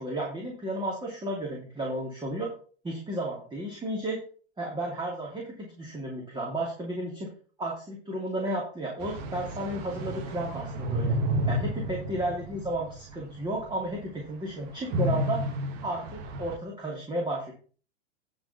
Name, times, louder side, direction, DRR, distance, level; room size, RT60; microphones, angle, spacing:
voice 1, 0.0-2.5 2.8-4.2 4.6-7.3 7.6-11.1 11.5-15.4 15.8-17.5, right 1 dB, 15° right, -2 dB, 2.9 m, -33 dB
sound 1, 9.0-13.3 13.7-13.8 14.9-16.6, right 1 dB, 40° right, 1.6 m, -31 dB
9.9 x 5.2 x 5.9 m, 0.41 s
figure-of-eight pair, 90°, 34 cm